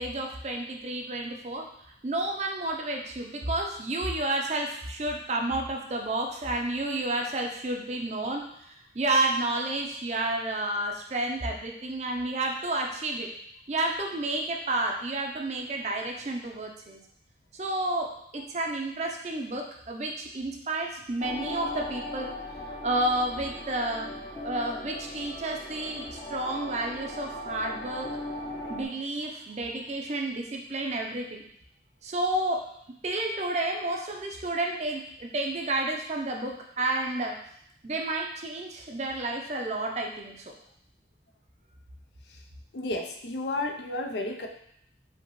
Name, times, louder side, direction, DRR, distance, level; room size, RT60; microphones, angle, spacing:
voice 1, 0.0-1.7 2.0-13.3 13.7-17.0 17.5-22.3 22.7-24.1 24.4-28.1 28.7-31.4 32.0-32.6 33.0-37.4 37.8-40.5, right 2 dB, 40° right, 2 dB, 0.5 m, -31 dB
sound 1, 21.2-28.8, left 1 dB, 25° left, 0.7 m, -38 dB
voice 2, 42.7-44.5, left 2 dB, 75° left, 3 dB, 0.5 m, -32 dB
5.1 x 2.9 x 3.0 m, 0.70 s
head